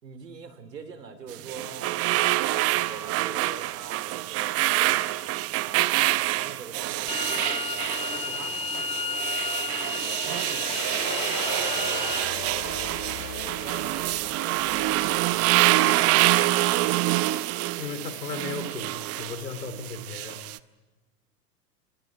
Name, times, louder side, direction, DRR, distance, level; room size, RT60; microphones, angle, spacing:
voice 1, 0.0-5.1 5.5-7.6 8.2-8.6 10.2-10.8 12.5-12.7 13.6-16.3, right 5 dB, 80° right, 10 dB, 3.2 m, -43 dB
sound 1, 1.3-20.6, right 17 dB, 30° right, 0.8 m, -26 dB
sound 2, 7.1-12.2, left 5 dB, 10° left, 1.1 m, -32 dB
sound 3, 10.5-16.9, left 9 dB, 40° left, 3.6 m, -39 dB
voice 2, 17.7-20.4, left 5 dB, 80° left, 9 dB, 3.5 m, -36 dB
29.5 x 25.5 x 4.8 m, 1.2 s
figure-of-eight pair, 95°, 49 cm